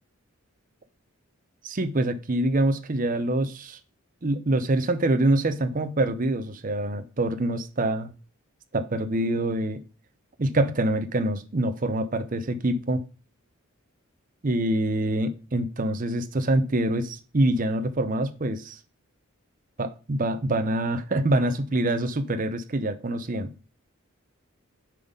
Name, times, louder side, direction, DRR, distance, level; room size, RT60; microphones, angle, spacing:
voice 1, 1.6-3.8 4.2-8.1 8.7-9.8 10.4-13.0 14.4-18.8 19.8-23.5, right 1 dB, 40° right, 0.6 m, -25 dB
7.4 x 4.0 x 5.2 m
head